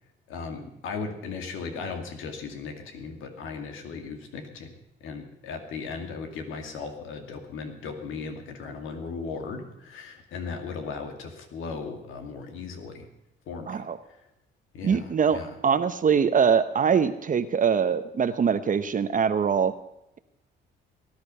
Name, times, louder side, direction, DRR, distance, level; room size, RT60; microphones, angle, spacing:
voice 1, 0.3-4.7 5.0-13.1 13.5-14.3 14.7-15.5, left 4 dB, 85° left, 5 dB, 2.4 m, -37 dB
voice 2, 13.7-14.0 14.8-19.7, right 6 dB, 40° right, 10 dB, 0.9 m, -23 dB
19.0 x 10.5 x 5.6 m, 0.85 s
cardioid pair, 90°, 20 cm